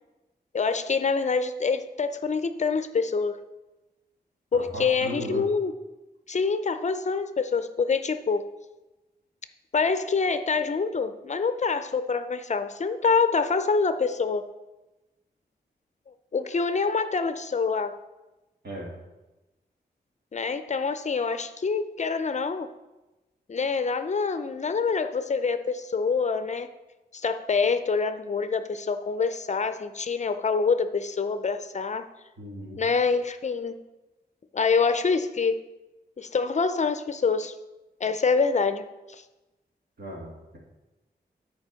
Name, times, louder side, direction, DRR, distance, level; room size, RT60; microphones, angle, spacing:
voice 1, 0.5-3.4 4.5-5.7 6.3-8.5 9.7-14.5 16.3-18.0 20.3-22.7 23.5-26.7 27.1-32.0 32.8-33.8 34.5-35.6 36.2-37.5 38.0-38.9, left 5 dB, 45° left, 11 dB, 0.5 m, -26 dB
voice 2, 4.5-5.5 18.6-18.9 32.4-32.8 40.0-40.6, equal, 70° right, -3 dB, 2.6 m, -37 dB
9.6 x 4.5 x 5.6 m, 1.1 s
wide cardioid pair, 95°, 17 cm